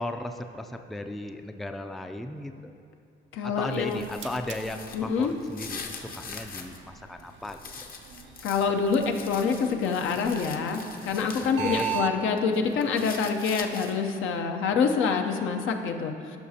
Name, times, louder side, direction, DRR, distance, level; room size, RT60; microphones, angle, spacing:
voice 1, 0.0-2.7 3.4-7.6 11.6-12.0, left 1 dB, ahead, 6 dB, 0.3 m, -36 dB
voice 2, 3.3-4.0 4.9-5.3 8.4-16.4, left 5 dB, 80° left, 4 dB, 0.7 m, -26 dB
sound 1, 3.6-6.8 7.2-12.1 12.4-14.1, left 5 dB, 45° left, 0.7 m, -43 dB
sound 2, 3.8-12.2, right 9 dB, 70° right, 0.5 m, -40 dB
13.5 x 5.8 x 2.8 m, 2.5 s
cardioid pair, 90°, 20 cm